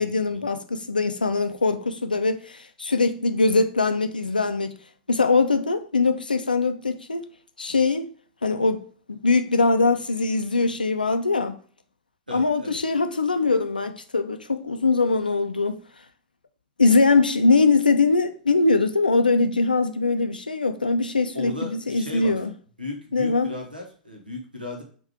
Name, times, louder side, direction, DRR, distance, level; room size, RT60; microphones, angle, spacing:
voice 1, 0.0-4.8 5.1-7.3 7.6-8.1 8.4-8.8 9.1-11.6 12.3-15.8 16.8-22.5 23.1-23.5, left 3 dB, 85° left, 0.4 m, -22 dB
voice 2, 12.3-12.8 21.3-22.3 22.8-24.8, left 2 dB, 90° right, 1.2 m, -36 dB
3.7 x 2.7 x 4.7 m
figure-of-eight pair, 95°, 5 cm